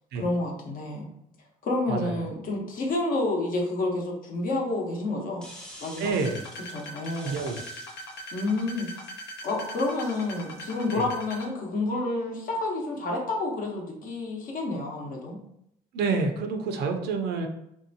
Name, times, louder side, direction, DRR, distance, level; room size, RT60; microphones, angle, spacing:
voice 1, 0.1-1.1 1.6-5.4 5.8-6.1 6.7-7.4 8.3-8.9 9.4-15.4, left 2 dB, 55° left, 0 dB, 0.9 m, -29 dB
sound 1, 5.4-10.8, equal, 5° left, 0.6 m, -49 dB
voice 2, 6.0-6.4 7.1-7.6 10.9-11.0 15.9-17.5, right 4 dB, 80° right, 5 dB, 0.6 m, -28 dB
sound 2, 6.2-11.5, equal, 75° left, 0.7 m, -40 dB
3.3 x 2.7 x 2.7 m, 0.76 s
cardioid pair, 110°, 17 cm